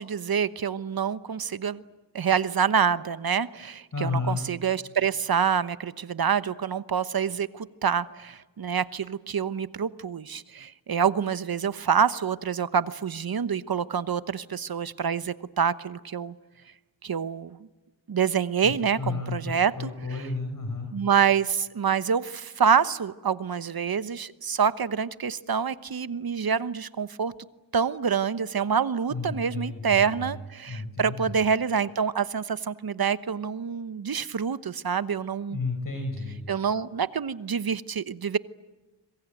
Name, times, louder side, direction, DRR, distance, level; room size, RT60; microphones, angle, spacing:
voice 1, 0.0-1.8 2.1-16.3 17.0-17.6 18.1-19.9 20.9-27.3 27.7-35.6 36.5-38.4, right 7 dB, 50° right, 14 dB, 1.1 m, -26 dB
voice 2, 3.9-4.4 18.6-20.9 29.1-30.3 30.7-31.4 35.5-36.4, left 3 dB, 40° left, 4 dB, 5.5 m, -32 dB
26.0 x 22.5 x 9.1 m, 1.2 s
cardioid pair, 65°, 47 cm